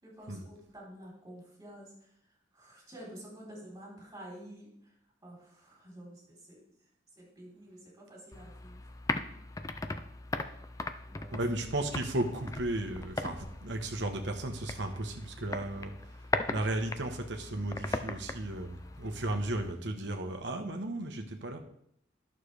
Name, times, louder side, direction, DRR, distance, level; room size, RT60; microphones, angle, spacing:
voice 1, 0.0-2.1 2.5-4.9 5.2-6.6 7.2-8.8 11.1-11.4, right 1 dB, 20° right, -5 dB, 3.8 m, -49 dB
sound 1, 8.3-19.7, left 2 dB, 20° left, 0.4 m, -39 dB
voice 2, 11.3-15.9 16.5-21.6, right 1 dB, 75° right, 4 dB, 1.2 m, -34 dB
11.5 x 6.6 x 3.4 m, 0.72 s
head